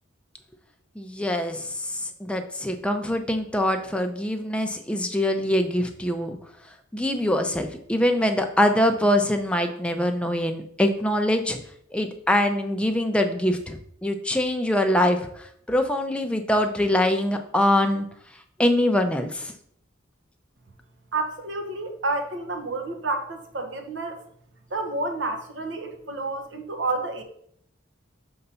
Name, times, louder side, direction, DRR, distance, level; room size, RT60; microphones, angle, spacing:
voice 1, 1.0-6.4 6.9-11.6 11.9-18.1 18.6-19.5, left 1 dB, 5° left, 5 dB, 0.5 m, -24 dB
voice 2, 21.1-24.2 24.7-27.2, right 2 dB, 65° right, 5 dB, 1.0 m, -30 dB
5.6 x 3.9 x 5.5 m, 0.66 s
head